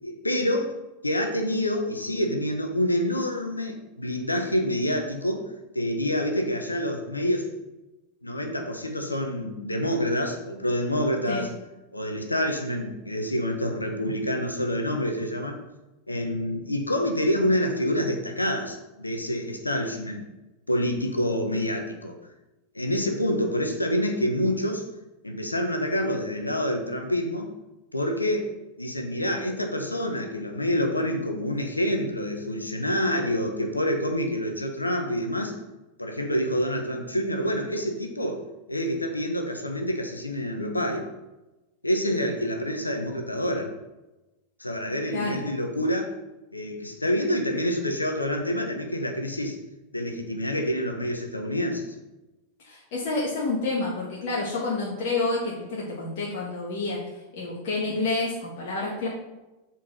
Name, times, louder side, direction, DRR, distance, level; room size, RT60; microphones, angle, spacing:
voice 1, 0.0-5.5 5.7-7.5 8.2-11.5 11.9-15.6 16.1-20.2 20.7-22.2 22.7-24.8 25.2-27.5 27.9-28.5 28.8-35.5 36.0-41.1 41.8-43.7 44.6-46.1 46.5-49.6 49.9-51.9, equal, 85° left, 4 dB, 1.1 m, -27 dB
voice 2, 52.6-57.0 57.3-59.1, left 3 dB, 50° left, -4 dB, 1.8 m, -29 dB
7.6 x 4.5 x 5.3 m, 1.0 s
figure-of-eight pair, 90°, 0 cm